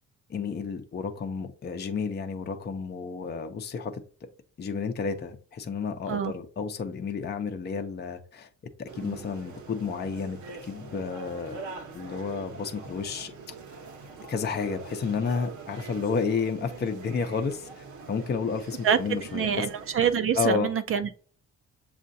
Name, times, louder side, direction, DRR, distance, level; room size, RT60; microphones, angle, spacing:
voice 1, 0.3-4.3 4.6-8.5 8.8-11.6 11.9-13.5 14.3-19.7 20.4-20.7, left 5 dB, 35° left, 0.6 m, -31 dB
sound 1, 8.8-20.2, right 4 dB, 75° right, 1.0 m, -44 dB
voice 2, 18.8-21.1, right 7 dB, 45° right, 0.5 m, -26 dB
7.3 x 2.5 x 2.7 m
cardioid pair, 90°, 30 cm